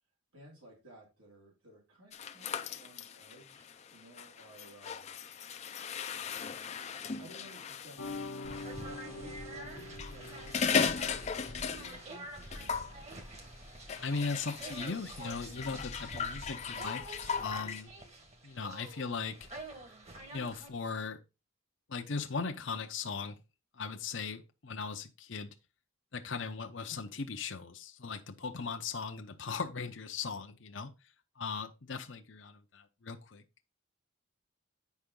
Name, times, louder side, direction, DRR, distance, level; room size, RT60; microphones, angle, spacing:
voice 1, 0.3-5.1 5.4-12.7, right 1 dB, 85° right, 3.2 m, -56 dB
sound 1, 2.1-8.7 9.8-12.1 12.4-12.9 13.9-17.8, left 6 dB, 30° left, 0.5 m, -37 dB
sound 2, 8.0-12.8, left 2 dB, 85° left, 1.0 m, -46 dB
sound 3, 8.4-20.7, right 1 dB, 30° right, 1.4 m, -47 dB
voice 2, 14.0-17.9 18.4-19.4 20.3-21.2 21.9-23.4 23.8-25.5 26.1-30.9 31.4-33.4, left 4 dB, 60° left, 0.8 m, -38 dB
8.4 x 5.6 x 3.7 m
head